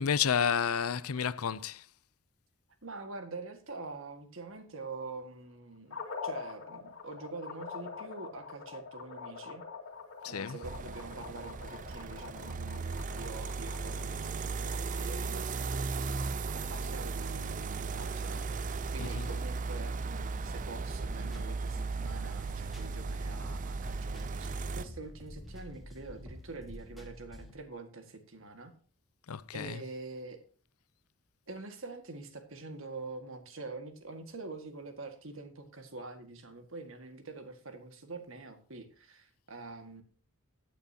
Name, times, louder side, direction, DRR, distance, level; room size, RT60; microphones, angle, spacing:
voice 1, 0.0-1.8 10.2-10.6 19.0-19.3 29.3-29.8, left 7 dB, 85° left, 0.6 m, -31 dB
voice 2, 2.8-6.0 6.2-9.6 10.3-28.7 29.5-30.4 31.5-40.0, right 3 dB, 65° right, 1.9 m, -45 dB
sound 1, 5.9-18.2, left 5 dB, 65° left, 2.1 m, -46 dB
sound 2, 10.6-24.8, right 4 dB, 35° right, 0.5 m, -36 dB
sound 3, 20.1-27.5, equal, ahead, 2.0 m, -48 dB
15.5 x 9.4 x 2.9 m
head